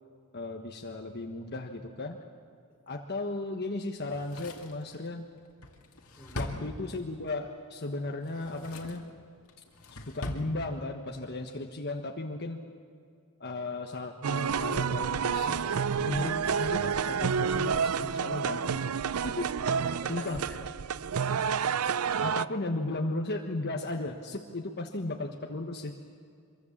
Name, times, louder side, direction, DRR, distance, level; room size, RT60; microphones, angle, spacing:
voice 1, 0.3-2.2 2.9-5.3 6.3-9.1 9.9-12.6 13.4-15.7 16.0-18.9 19.2-19.5 20.1-20.4 22.2-26.0, left 2 dB, 50° left, 2 dB, 1.4 m, -35 dB
Drawer open or close, 4.0-7.3 8.2-9.1 9.5-10.5 10.8-10.9, left 1 dB, 70° left, 2.3 m, -41 dB
voice 2, 6.2-6.7 19.2-19.4 19.7-21.5, left 1 dB, 10° left, 3 dB, 4.5 m, -50 dB
sound 1, 14.2-22.5, right 6 dB, 75° right, 0.5 m, -29 dB
25.5 x 23.5 x 7.4 m, 2.3 s
head